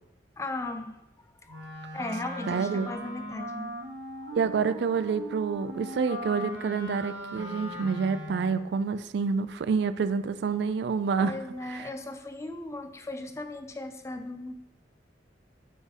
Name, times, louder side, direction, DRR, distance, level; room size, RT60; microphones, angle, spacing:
voice 1, 0.4-0.9 1.4-1.7 1.9-3.7 4.2-4.3 11.2-14.6, left 2 dB, 15° left, 8 dB, 0.3 m, -37 dB
Wind instrument woodwind instrument, 1.5-8.7, right 1 dB, 80° right, 1.1 m, -39 dB
voice 2, 2.5-2.9 4.3-11.3 11.7-11.8, right 5 dB, 65° right, 12 dB, 0.3 m, -28 dB
5.0 x 4.3 x 4.8 m, 0.92 s
head